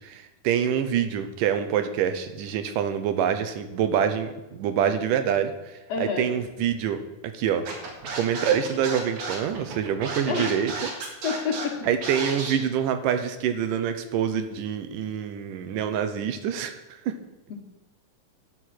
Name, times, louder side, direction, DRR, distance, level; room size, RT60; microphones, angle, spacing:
voice 1, 0.0-7.7 8.1-10.9 11.9-16.8 17.1-17.2, right 8 dB, 85° right, 9 dB, 2.4 m, -26 dB
voice 2, 5.9-6.4 10.3-10.5 11.2-11.9, left 5 dB, 60° left, 3 dB, 1.9 m, -28 dB
Scratching (performance technique), 7.7-12.5, right 4 dB, 65° right, 3.1 m, -33 dB
10.5 x 6.5 x 7.7 m, 0.99 s
omnidirectional pair, 3.8 m